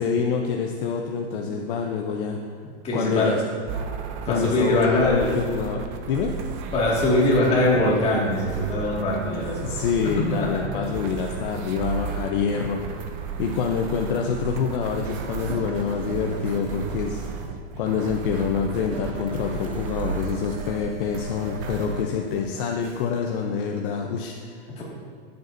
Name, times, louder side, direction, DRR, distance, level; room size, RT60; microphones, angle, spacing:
voice 1, 0.0-2.4 2.9-3.4 4.3-6.3 9.6-12.8 13.4-17.5 17.8-24.6, left 6 dB, 50° left, 2 dB, 0.7 m, -26 dB
voice 2, 2.8-3.3 4.2-5.3 6.7-9.8 10.3-10.5 24.8-24.9, left 1 dB, 20° left, -5 dB, 2.0 m, -22 dB
sound 1, 3.7-22.0, right 6 dB, 30° right, 0.5 m, -33 dB
sound 2, 14.8-23.1, right 1 dB, 70° right, 1.9 m, -41 dB
13.5 x 7.9 x 2.6 m, 2.3 s
supercardioid pair, 165°, 34 cm